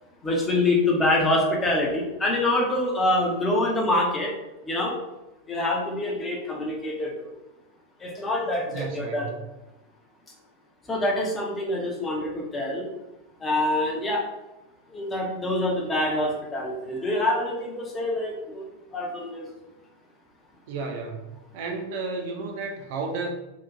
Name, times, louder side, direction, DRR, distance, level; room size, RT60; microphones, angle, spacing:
voice 1, 0.2-4.3 4.6-4.9 5.5-7.3 8.0-9.3 10.9-12.9 13.4-14.2 14.9-18.7 18.9-19.5, left 1 dB, 15° left, -1 dB, 0.5 m, -25 dB
voice 2, 8.7-9.4 20.7-21.3 21.5-23.3, right 4 dB, 50° right, 3 dB, 0.4 m, -32 dB
2.8 x 2.1 x 2.4 m, 0.99 s
figure-of-eight pair, 90°, 0 cm